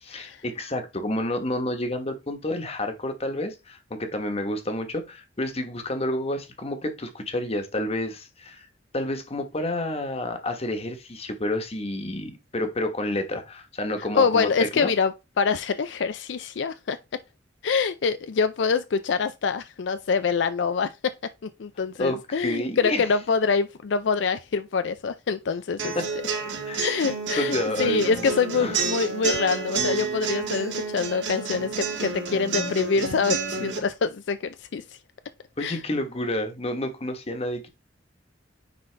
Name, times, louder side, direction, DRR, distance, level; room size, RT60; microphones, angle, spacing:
voice 1, 0.0-8.7 8.9-14.9 22.0-23.1 25.9-26.1 26.6-26.9 27.4-28.3 28.6-28.8 35.6-37.7, left 1 dB, 35° left, 1.2 m, -29 dB
voice 2, 14.1-17.0 17.6-21.1 21.4-25.9 26.8-34.8 35.6-35.8, left 5 dB, 70° left, 0.4 m, -25 dB
sound 1, 25.8-33.8, right 4 dB, 75° right, 2.8 m, -29 dB
9.6 x 4.0 x 3.3 m
head